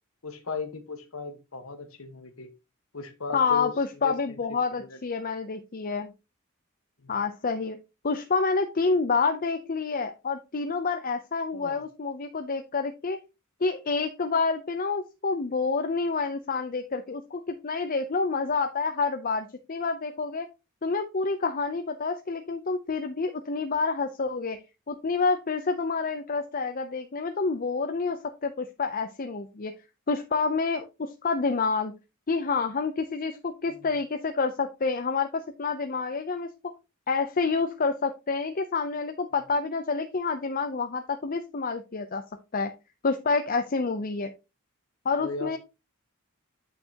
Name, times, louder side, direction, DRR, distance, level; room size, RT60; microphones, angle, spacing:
voice 1, 0.2-2.5 2.9-4.4 4.7-5.0 7.0-7.1 11.5-11.8 33.7-33.9 45.2-45.6, left 4 dB, 85° left, 8 dB, 1.4 m, -37 dB
voice 2, 3.3-6.1 7.1-7.8 8.0-13.2 13.6-20.5 20.8-24.6 24.9-29.7 30.1-31.9 32.3-36.5 37.1-42.2 42.5-42.7 43.0-44.3 45.0-45.6, left 4 dB, 45° left, 6 dB, 0.7 m, -28 dB
8.6 x 6.2 x 2.9 m, 0.27 s
head